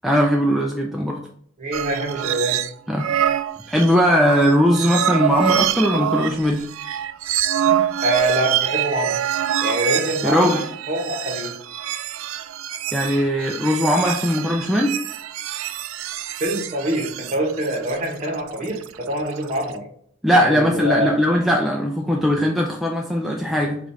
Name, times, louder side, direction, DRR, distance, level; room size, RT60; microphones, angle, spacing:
voice 1, 0.0-1.2 2.9-3.1 3.7-6.6 10.2-10.6 12.9-14.9 20.2-23.8, equal, ahead, -1 dB, 0.3 m, -19 dB
voice 2, 1.6-2.6 8.0-9.1 9.6-10.6 10.9-11.5 16.4-19.8 20.4-21.3, right 1 dB, 35° right, 0 dB, 1.1 m, -24 dB
sound 1, 1.7-2.7 3.0-19.7, right 10 dB, 80° right, 0.3 m, -25 dB
4.9 x 2.5 x 4.0 m, 0.63 s
head